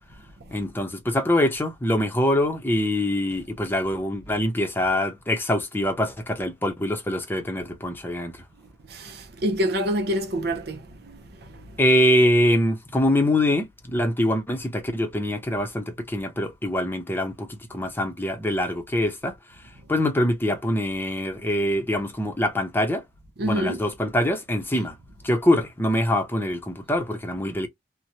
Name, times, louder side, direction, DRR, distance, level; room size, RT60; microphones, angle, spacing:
voice 1, 0.5-8.4 11.8-19.3 19.9-23.0 23.4-24.9 25.2-27.7, left 1 dB, 10° left, 0.7 m, -24 dB
voice 2, 8.9-11.7 23.4-23.8, equal, 60° right, 0.6 m, -27 dB
3.1 x 2.1 x 2.7 m
head